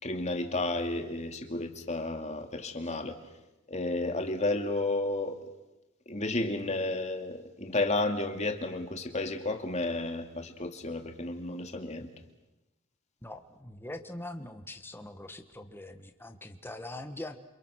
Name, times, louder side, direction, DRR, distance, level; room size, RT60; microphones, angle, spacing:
voice 1, 0.0-3.2 3.7-5.4 6.1-12.1, left 2 dB, 30° left, 5 dB, 2.5 m, -32 dB
voice 2, 13.2-17.4, left 1 dB, 10° left, 7 dB, 1.5 m, -42 dB
29.0 x 27.0 x 6.5 m, 1.0 s
head